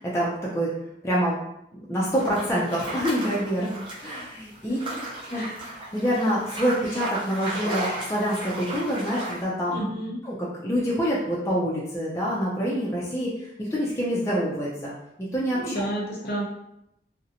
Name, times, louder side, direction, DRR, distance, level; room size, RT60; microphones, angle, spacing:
voice 1, 0.1-0.7 1.0-1.4 1.9-3.7 4.0-4.8 5.3-5.4 5.9-9.8 10.2-13.3 13.6-14.9 15.3-15.8, equal, 15° left, -6 dB, 0.4 m, -26 dB
sound 1, 2.2-9.4, right 1 dB, 30° right, 0.7 m, -35 dB
voice 2, 3.6-3.9 4.7-4.8 5.3-5.6 9.7-10.2 15.5-16.4, right 1 dB, 55° left, -2 dB, 0.6 m, -31 dB
2.5 x 2.0 x 2.7 m, 0.80 s
head